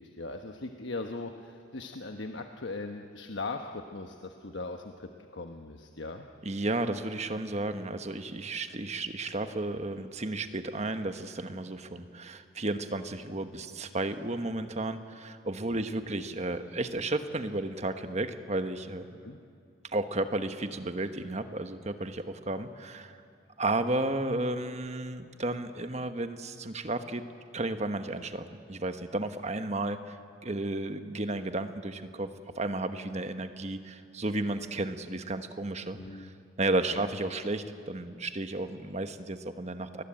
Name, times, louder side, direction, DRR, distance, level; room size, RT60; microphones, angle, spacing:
voice 1, 0.0-6.3 15.7-15.8 19.2-19.4 36.0-36.3 36.9-37.0, left 3 dB, 65° left, 5 dB, 1.1 m, -39 dB
voice 2, 6.4-19.1 19.9-23.2 23.6-27.2 27.5-30.2 30.4-32.3 32.5-36.3 36.6-40.0, right 2 dB, 35° right, 8 dB, 1.3 m, -33 dB
30.0 x 20.5 x 8.9 m, 2.4 s
head